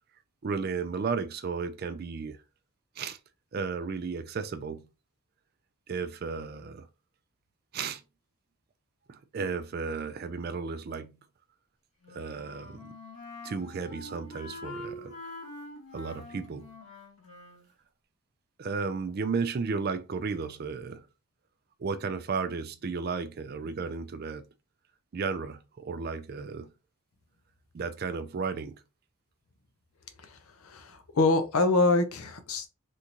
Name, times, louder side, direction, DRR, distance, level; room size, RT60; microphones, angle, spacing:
voice 1, 0.4-2.4 3.0-3.2 3.5-4.9 5.9-6.9 7.7-8.0 9.1-11.2 12.1-12.9 13.4-15.2 15.9-16.7 18.6-21.1 21.8-24.4 25.1-26.7 27.7-28.8, right 5 dB, 45° right, 0.3 m, -34 dB
Wind instrument woodwind instrument, 12.0-17.7, left 1 dB, 60° left, 2.1 m, -45 dB
voice 2, 30.6-32.7, left 3 dB, 75° left, 0.7 m, -25 dB
3.5 x 2.5 x 2.9 m
head